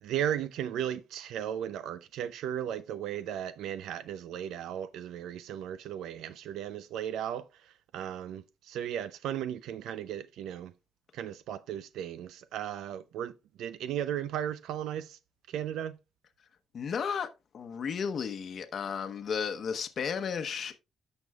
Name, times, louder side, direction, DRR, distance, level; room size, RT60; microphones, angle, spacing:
voice 1, 0.0-7.4 7.9-10.7 11.1-13.3 13.6-15.2 15.5-16.0, right 10 dB, 85° right, 0.5 m, -35 dB
voice 2, 16.7-17.3 17.5-20.8, left 6 dB, 55° left, 0.9 m, -33 dB
13.5 x 5.4 x 2.3 m
cardioid pair, 90°, 0 cm